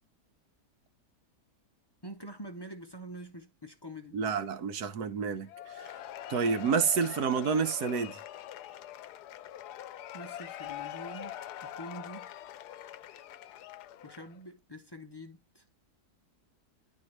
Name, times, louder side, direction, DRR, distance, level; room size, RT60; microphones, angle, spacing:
voice 1, 2.0-4.2 10.1-11.3 11.6-12.3 14.0-15.6, equal, 25° left, 0.5 m, -45 dB
voice 2, 4.1-5.5 5.8-5.9 6.3-8.2, right 6 dB, 75° right, 1.5 m, -29 dB
Cheering / Applause / Crowd, 5.5-14.4, left 11 dB, 90° left, 1.2 m, -44 dB
11.0 x 4.4 x 3.2 m
omnidirectional pair, 1.7 m